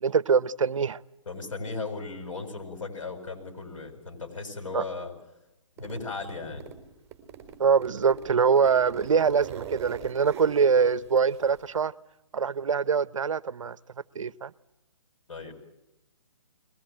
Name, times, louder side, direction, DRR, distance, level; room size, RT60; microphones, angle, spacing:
voice 1, 0.0-1.0 4.7-4.8 7.6-11.9 12.3-13.8 14.1-14.5, right 6 dB, 75° right, 0.9 m, -24 dB
voice 2, 1.3-5.1 5.8-6.7 15.3-15.5, left 3 dB, 75° left, 7.4 m, -36 dB
Zipper (clothing), 5.8-6.8 7.1-11.8, right 8 dB, 15° right, 4.1 m, -42 dB
22.5 x 20.0 x 9.1 m
hypercardioid pair, 150°, 17 cm